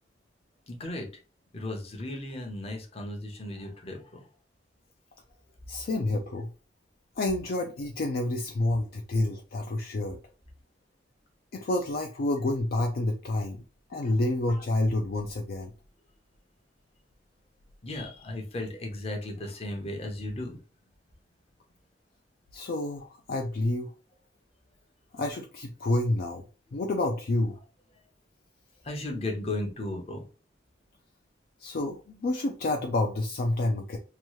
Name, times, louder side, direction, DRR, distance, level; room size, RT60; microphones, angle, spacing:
voice 1, 0.7-1.1 1.5-4.3 14.0-14.1 17.8-20.6 28.8-30.3, left 1 dB, 35° left, 2 dB, 0.7 m, -35 dB
voice 2, 5.7-6.5 7.2-10.2 11.5-13.6 13.9-15.7 22.5-23.9 25.1-26.4 26.7-27.6 31.6-34.0, left 2 dB, 55° left, 3 dB, 0.4 m, -29 dB
2.9 x 2.3 x 3.0 m, 0.36 s
head